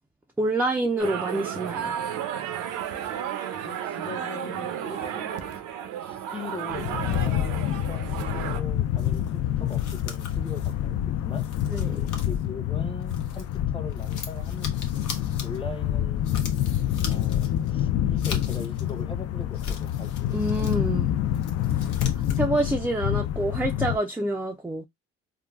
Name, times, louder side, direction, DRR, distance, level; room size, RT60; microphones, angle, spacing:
voice 1, 0.4-2.0 11.7-12.1 20.3-21.1 22.4-24.9, right 1 dB, 5° right, 0.3 m, -27 dB
sound 1, 1.0-8.6, right 9 dB, 85° right, 0.6 m, -33 dB
voice 2, 3.6-5.5 6.0-11.5 12.2-14.8 15.4-16.2 17.0-20.6, left 3 dB, 20° left, 0.7 m, -41 dB
sound 2, 6.7-24.0, left 11 dB, 55° left, 0.4 m, -27 dB
sound 3, 9.0-13.6 13.9-19.0 19.4-20.8 21.2-22.5, left 6 dB, 80° left, 0.9 m, -40 dB
3.6 x 2.2 x 2.2 m
cardioid pair, 90°, 30 cm